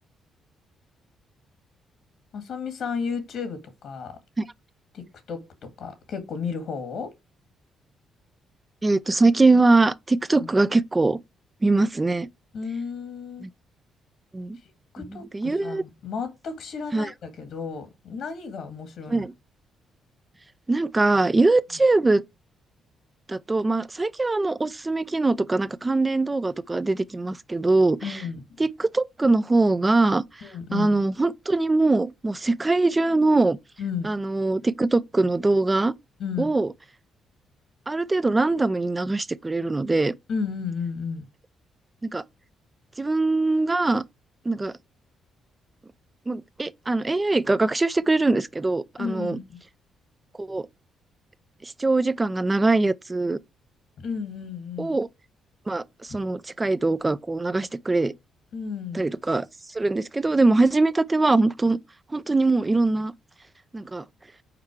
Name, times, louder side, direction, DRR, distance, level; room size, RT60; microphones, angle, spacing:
voice 1, 2.3-4.1 4.9-7.1 10.3-10.5 12.5-13.5 14.9-19.3 28.0-28.6 30.4-30.9 33.8-34.1 36.2-36.5 40.3-41.3 49.0-49.6 54.0-55.0 56.1-56.2 58.5-59.1, left 5 dB, 70° left, 1.8 m, -33 dB
voice 2, 8.8-11.2 11.6-12.3 13.4-13.5 14.3-14.6 15.0-15.8 16.9-17.1 19.1-19.3 20.7-22.2 23.3-28.2 28.6-33.6 34.0-35.9 36.4-36.7 37.9-40.1 42.0-42.2 43.0-44.0 44.4-44.7 46.3-49.4 50.4-50.7 51.6-53.4 54.8-55.1 55.7-58.1 58.9-59.5 59.7-61.8 62.1-63.1 63.7-64.0, right 2 dB, 20° right, 0.5 m, -22 dB
5.9 x 4.4 x 4.8 m
cardioid pair, 90°, 0 cm